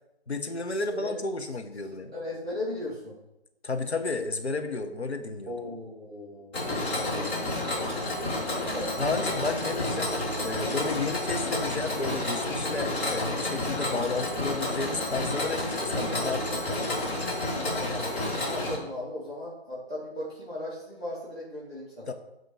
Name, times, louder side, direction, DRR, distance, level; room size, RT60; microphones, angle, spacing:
voice 1, 0.3-2.1 3.6-5.5 9.0-10.1 10.4-17.0 22.1-22.2, left 3 dB, 75° left, 6 dB, 1.0 m, -32 dB
voice 2, 2.1-3.2 5.4-9.2 10.8-11.0 17.7-22.1, left 1 dB, 5° right, -13 dB, 0.6 m, -38 dB
Mechanisms, 6.5-18.7, left 1 dB, 10° left, 1.0 m, -30 dB
8.2 x 3.1 x 6.2 m, 0.90 s
figure-of-eight pair, 150°, 33 cm